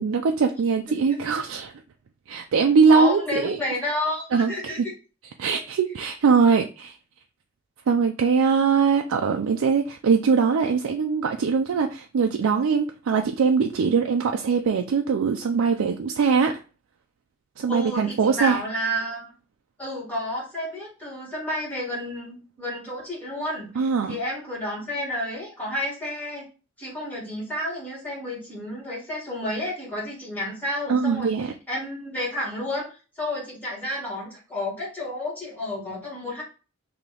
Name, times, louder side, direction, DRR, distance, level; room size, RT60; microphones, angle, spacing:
voice 1, 0.0-1.7 2.3-3.6 4.3-4.9 5.4-7.0 7.9-16.6 17.6-18.6 23.8-24.2 30.9-31.5, right 5 dB, 85° right, 0.4 m, -22 dB
voice 2, 2.9-4.8 17.7-19.3 19.8-26.5 26.8-31.3 31.7-36.4, left 1 dB, 10° left, 2.2 m, -31 dB
3.8 x 2.8 x 3.3 m
head